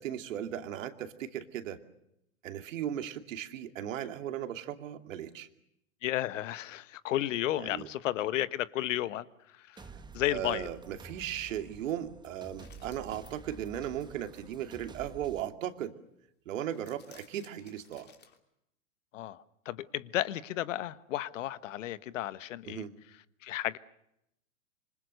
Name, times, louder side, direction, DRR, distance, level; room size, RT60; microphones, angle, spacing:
voice 1, 0.0-1.8 2.4-5.5 7.5-7.9 9.9-10.0 10.3-15.9 16.5-18.1 22.6-22.9, right 10 dB, 65° right, 8 dB, 2.7 m, -37 dB
voice 2, 6.0-9.2 10.1-10.7 19.1-22.8 23.4-23.8, left 13 dB, 65° left, 16 dB, 1.4 m, -33 dB
sound 1, 9.8-15.4, right 3 dB, 10° right, 1.4 m, -50 dB
sound 2, 12.6-13.7 16.6-18.4, left 7 dB, 25° left, 3.1 m, -59 dB
26.5 x 25.0 x 6.6 m, 0.79 s
hypercardioid pair, 110°, 41 cm